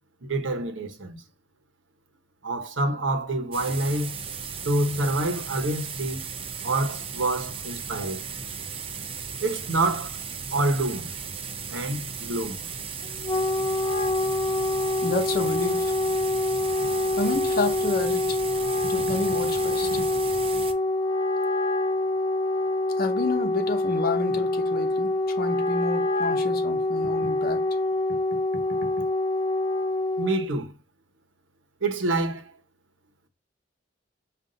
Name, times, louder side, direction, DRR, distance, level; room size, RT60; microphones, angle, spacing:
voice 1, 0.2-1.2 2.4-4.2 4.6-6.2 6.6-8.2 9.4-10.2 10.5-11.1 11.7-12.6 20.0-20.1 30.2-30.7 31.8-32.5, right 2 dB, 80° right, 0.9 m, -27 dB
sound 1, 3.5-20.7, right 6 dB, 30° right, 0.5 m, -36 dB
Wind instrument woodwind instrument, 13.0-30.5, left 2 dB, 25° left, 0.6 m, -26 dB
voice 2, 15.0-15.9 17.2-18.2 18.9-19.9 23.0-27.6, left 3 dB, 55° left, 0.8 m, -30 dB
5.3 x 2.5 x 3.8 m
head